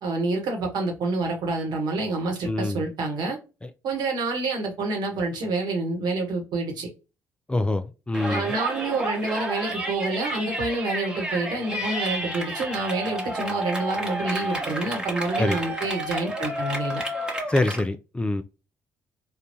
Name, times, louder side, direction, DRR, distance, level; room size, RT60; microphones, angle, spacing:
voice 1, 0.0-3.4 3.8-6.9 8.3-17.0, right 3 dB, 60° right, 1.1 m, -28 dB
voice 2, 2.5-2.8 7.5-8.5 15.4-15.6 17.5-18.4, left 2 dB, 15° left, 0.3 m, -25 dB
Yell, 8.1-17.8, equal, 10° right, 1.1 m, -31 dB
3.6 x 2.2 x 2.6 m
hypercardioid pair, 45°, 8 cm